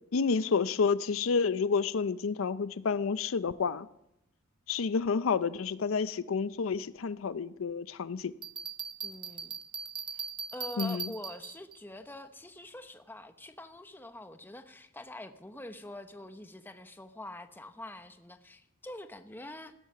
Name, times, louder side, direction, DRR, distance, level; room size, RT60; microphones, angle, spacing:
voice 1, 0.1-3.9 4.7-8.3 10.8-11.1, left 5 dB, 80° left, 0.5 m, -29 dB
Bell, 8.4-11.8, right 6 dB, 25° right, 0.7 m, -39 dB
voice 2, 9.0-9.6 10.1-19.7, left 1 dB, 10° left, 0.9 m, -45 dB
15.5 x 12.5 x 5.6 m
head